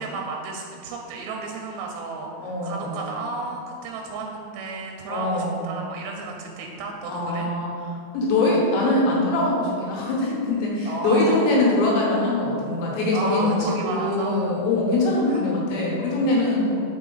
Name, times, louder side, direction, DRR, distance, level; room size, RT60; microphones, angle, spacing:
voice 1, 0.0-7.5 10.9-11.5 13.1-14.5 15.3-15.4 16.6-16.8, right 3 dB, 80° right, 1 dB, 2.6 m, -33 dB
voice 2, 2.4-3.0 5.1-5.7 7.1-7.7 8.1-16.8, left 2 dB, 80° left, -4 dB, 3.2 m, -23 dB
5.9 x 4.5 x 3.9 m, 2.5 s
omnidirectional pair, 5.2 m